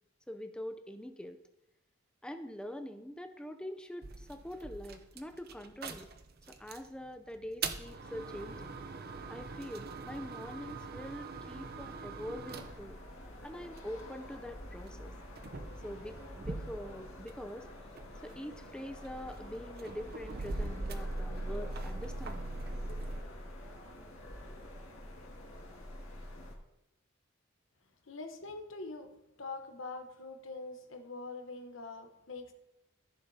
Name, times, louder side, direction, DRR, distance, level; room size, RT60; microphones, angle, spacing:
voice 1, 0.3-1.4 2.2-6.1 6.5-8.8 9.3-13.0 13.4-15.1 15.8-17.7 18.2-22.5, equal, 5° left, 7 dB, 0.5 m, -44 dB
sound 1, 4.0-6.9 7.4-14.1 14.9-17.5 17.8-23.2, right 3 dB, 50° right, 0.7 m, -41 dB
sound 2, 12.5-26.6, left 1 dB, 85° left, 1.9 m, -48 dB
voice 2, 28.1-29.1 29.4-32.5, left 3 dB, 70° left, 6 dB, 1.0 m, -44 dB
14.5 x 6.8 x 2.8 m, 0.88 s
head